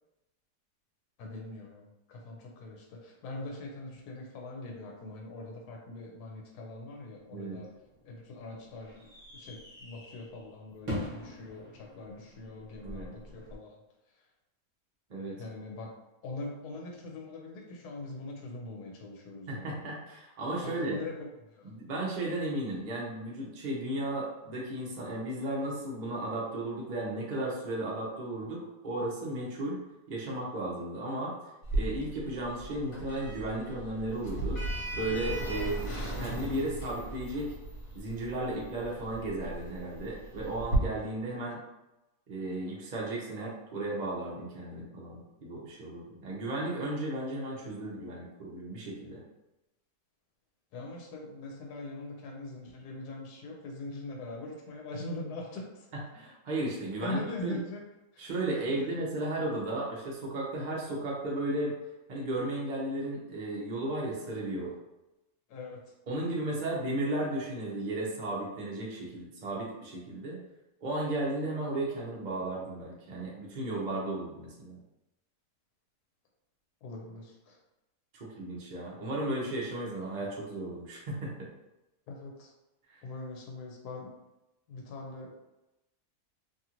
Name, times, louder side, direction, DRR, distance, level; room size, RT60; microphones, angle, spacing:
voice 1, 1.2-7.7 8.1-13.8 14.1-14.2 15.4-15.9 16.2-19.9 20.6-21.7 35.5-35.7 50.7-55.9 57.0-57.8 58.1-58.9 65.5-65.9 76.8-77.6 82.1-82.5 83.0-84.2 84.7-85.3, left 2 dB, 85° left, 0 dB, 1.2 m, -42 dB
sound 1, 7.6-13.6, equal, 25° right, 0.9 m, -43 dB
voice 2, 15.1-15.4 19.5-21.0 21.6-29.8 30.1-31.3 31.7-34.6 34.9-37.5 37.9-41.6 42.3-49.2 56.1-57.6 58.2-61.8 62.1-64.8 66.1-70.4 70.8-74.8 78.1-81.5, right 1 dB, 55° right, -4 dB, 0.5 m, -34 dB
Sliding door, 31.6-40.8, right 2 dB, 65° left, 1.3 m, -37 dB
2.8 x 2.5 x 2.9 m, 0.97 s
omnidirectional pair, 1.7 m